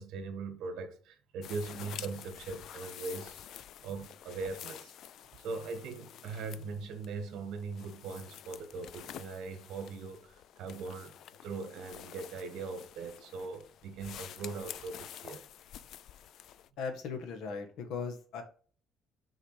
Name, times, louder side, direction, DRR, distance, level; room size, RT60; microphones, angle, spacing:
voice 1, 0.0-3.5 3.8-4.9 5.4-11.1 11.4-15.4, right 4 dB, 75° right, 1.5 m, -40 dB
sound 1, 1.4-16.7, left 10 dB, 55° left, 0.3 m, -49 dB
voice 2, 16.8-18.4, left 5 dB, 70° left, 1.5 m, -38 dB
6.6 x 4.8 x 4.8 m
cardioid pair, 180°, 0 cm